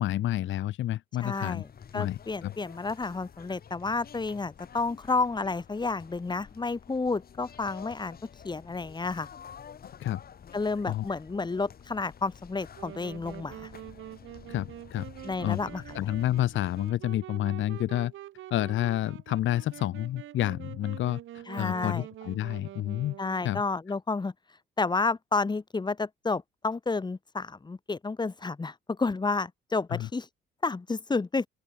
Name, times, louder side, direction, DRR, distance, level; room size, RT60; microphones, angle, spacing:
voice 1, 0.0-1.6 1.9-2.5 10.0-10.2 10.9-11.1 14.5-15.1 15.4-15.6 15.9-18.1 18.5-23.2 23.4-23.6 29.9-30.1, left 13 dB, 75° left, 1.3 m, -29 dB
voice 2, 1.2-1.7 1.9-8.2 8.4-9.3 10.5-13.7 15.2-16.2 21.5-22.1 23.2-24.3 24.8-30.3 30.6-31.5, left 3 dB, 20° left, 1.2 m, -31 dB
sound 1, 1.4-16.9, left 7 dB, 50° left, 2.8 m, -50 dB
Wind instrument woodwind instrument, 12.7-23.7, right 13 dB, 80° right, 2.0 m, -46 dB
open air
cardioid pair, 90°, 20 cm